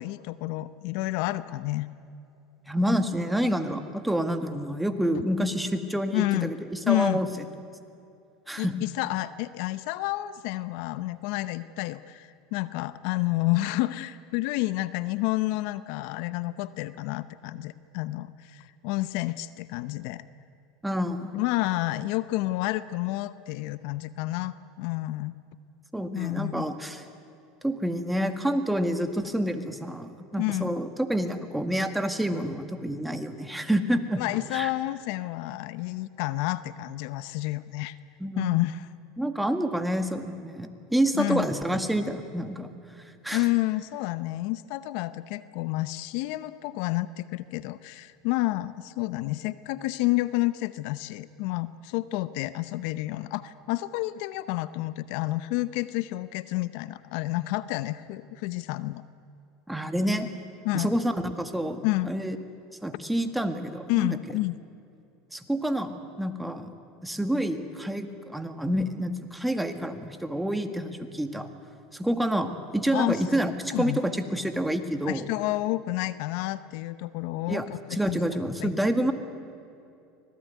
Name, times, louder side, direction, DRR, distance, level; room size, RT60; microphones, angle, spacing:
voice 1, 0.0-1.9 6.1-6.5 6.9-7.2 8.6-20.2 21.3-25.3 26.1-26.6 30.4-30.8 34.2-38.0 38.4-38.8 41.2-41.5 43.3-59.0 60.6-60.9 61.8-62.1 63.9-64.6 72.9-73.2 73.7-74.0 75.1-78.2 78.6-78.7, left 18 dB, 65° left, 15 dB, 0.8 m, -29 dB
voice 2, 2.7-7.3 8.5-8.7 20.8-21.3 25.9-27.0 27.6-34.2 34.5-34.7 38.2-38.6 39.2-42.7 43.0-43.5 59.7-60.3 60.7-62.4 62.8-64.2 65.3-66.7 67.0-71.5 71.9-75.2 77.5-79.1, equal, 5° right, 7 dB, 1.9 m, -28 dB
25.5 x 18.5 x 9.4 m, 2.6 s
supercardioid pair, 110°, 0 cm